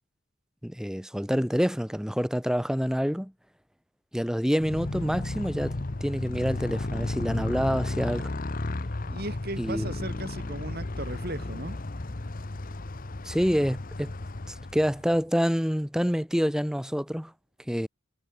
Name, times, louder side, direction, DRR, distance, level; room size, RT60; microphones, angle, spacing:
voice 1, 0.6-3.3 4.1-8.3 9.6-9.9 13.2-14.1 14.5-17.3 17.7-17.9, equal, 5° right, 2.4 m, -27 dB
Motorcycle, 4.5-15.2, left 2 dB, 40° left, 0.9 m, -34 dB
voice 2, 9.1-11.8, right 1 dB, 45° right, 5.0 m, -36 dB
head